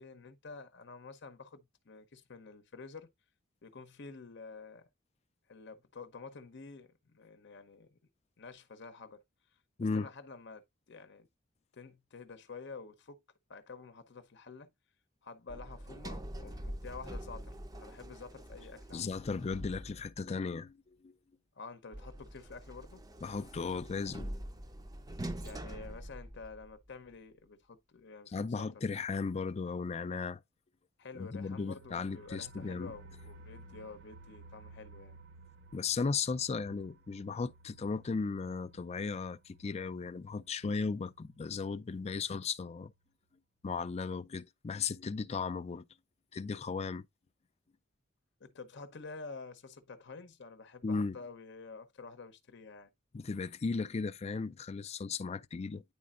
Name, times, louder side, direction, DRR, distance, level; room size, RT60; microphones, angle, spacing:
voice 1, 0.0-3.1 3.6-4.9 5.5-8.0 8.4-9.2 9.9-11.3 11.7-13.2 13.5-14.7 15.2-19.2 21.5-23.0 25.4-28.7 31.0-35.2 48.4-52.9, left 4 dB, 60° left, 0.8 m, -49 dB
Sliding door, 15.5-20.3 21.9-26.9, right 1 dB, 20° right, 0.5 m, -44 dB
voice 2, 18.9-21.2 23.2-24.4 28.3-30.4 31.2-32.9 35.7-42.9 43.6-45.8 46.3-47.0 50.8-51.2 53.1-55.8, left 4 dB, 35° left, 0.4 m, -36 dB
sound 1, 31.3-41.9 42.3-42.4 42.7-42.8, right 2 dB, 65° right, 0.8 m, -57 dB
9.6 x 4.2 x 2.4 m
head